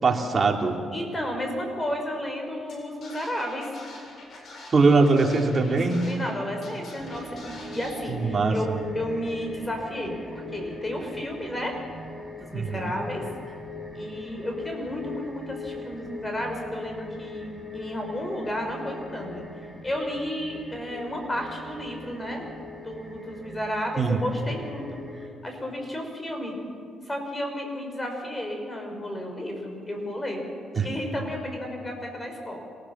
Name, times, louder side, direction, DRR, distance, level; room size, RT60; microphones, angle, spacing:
voice 1, 0.0-0.8 4.7-6.0 8.1-8.8 12.5-12.9 24.0-24.2 30.8-30.9, right 3 dB, 35° right, 2 dB, 3.1 m, -22 dB
voice 2, 0.9-3.7 6.0-11.8 12.5-13.2 13.9-19.4 19.8-22.5 22.8-26.6 27.0-30.4 30.7-32.6, equal, 20° left, 2 dB, 6.0 m, -32 dB
Scratching (performance technique), 2.7-2.8 3.0-6.3 6.6-7.9, left 2 dB, 60° left, 7.8 m, -44 dB
sound 1, 7.0-25.3, left 2 dB, ahead, 4.3 m, -40 dB
26.5 x 19.0 x 7.4 m, 2.3 s
cardioid pair, 90°, 0 cm